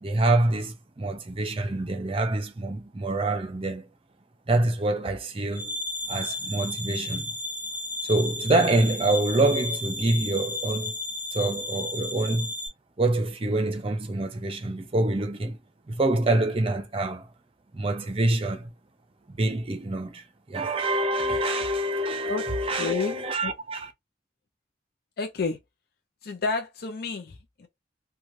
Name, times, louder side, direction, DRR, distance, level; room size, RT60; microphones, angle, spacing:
voice 1, 0.0-3.9 4.5-5.7 6.1-7.4 8.0-11.0 11.3-12.5 13.0-15.6 15.9-17.3 17.7-18.7 19.3-23.9, right 2 dB, 30° right, 0.6 m, -26 dB
sound 1, 5.5-12.7, left 2 dB, 10° right, 1.0 m, -33 dB
voice 2, 22.3-23.5 25.2-25.6 26.2-27.7, left 4 dB, 55° left, 0.5 m, -31 dB
3.1 x 2.2 x 2.6 m
head